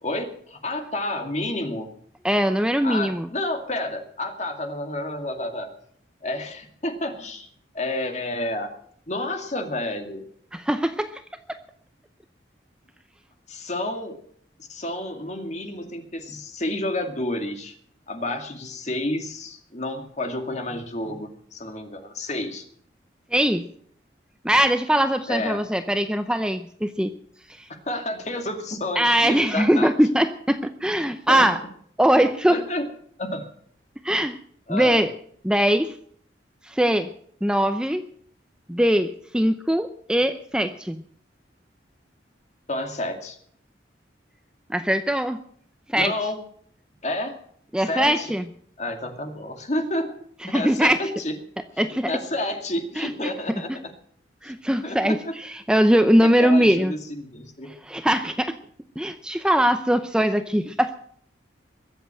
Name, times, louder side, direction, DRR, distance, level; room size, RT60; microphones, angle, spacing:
voice 1, 0.0-1.9 2.8-5.7 6.2-7.5 7.7-8.7 9.1-10.2 13.5-14.2 14.6-17.8 18.1-22.7 25.3-25.6 27.9-29.9 31.3-31.5 32.1-32.9 33.2-33.4 34.7-35.0 42.7-43.4 45.9-46.4 47.0-47.4 47.8-48.3 48.8-50.2 50.5-51.4 52.1-53.7 54.4-54.5 54.8-55.3 56.2-57.7, left 1 dB, 40° left, 5 dB, 2.3 m, -30 dB
voice 2, 2.2-3.3 10.5-11.1 11.5-11.6 23.3-23.6 24.4-27.1 27.6-27.7 29.0-31.6 32.0-32.6 34.0-34.4 34.7-35.1 35.4-35.9 36.6-37.1 37.4-38.0 38.7-41.0 44.7-45.4 45.9-46.1 47.7-48.5 50.5-51.0 51.8-52.1 53.0-53.1 54.4-56.9 57.7-58.5 59.0-61.0, equal, 5° right, 9 dB, 0.6 m, -21 dB
22.0 x 8.0 x 7.7 m, 0.62 s
head